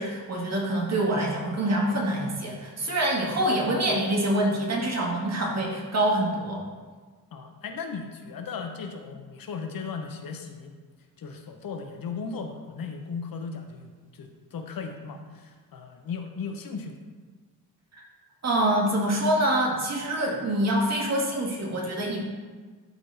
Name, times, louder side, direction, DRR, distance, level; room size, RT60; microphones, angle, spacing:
voice 1, 0.0-6.6 18.4-22.3, right 1 dB, 45° right, -2 dB, 1.8 m, -25 dB
voice 2, 7.3-10.7 11.2-17.0, left 5 dB, 65° left, 4 dB, 0.9 m, -37 dB
12.0 x 4.1 x 3.4 m, 1.4 s
wide cardioid pair, 120°, 37 cm